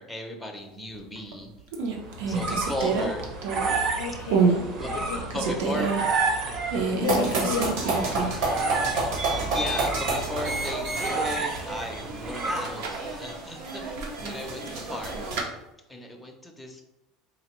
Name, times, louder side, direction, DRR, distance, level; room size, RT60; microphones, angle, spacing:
voice 1, 0.0-1.5 2.3-3.3 4.8-5.0 5.3-6.2 9.0-13.8 14.2-15.5 15.9-16.8, left 1 dB, 5° left, 1 dB, 0.4 m, -36 dB
sound 1, 0.9-1.3 1.7-3.9 4.3-4.6 5.0-6.0 6.7-8.5 8.8-8.9 12.4-13.1 14.0-15.5, right 5 dB, 80° right, 0.7 m, -27 dB
sound 2, 2.0-13.1, right 4 dB, 40° right, 0.6 m, -31 dB
voice 2, 3.9-5.2 6.9-7.8, left 5 dB, 80° left, 6 dB, 0.4 m, -31 dB
sound 3, 7.0-15.4, right 2 dB, 60° right, 0.9 m, -30 dB
4.1 x 2.6 x 3.0 m, 0.93 s
cardioid pair, 165°, 0 cm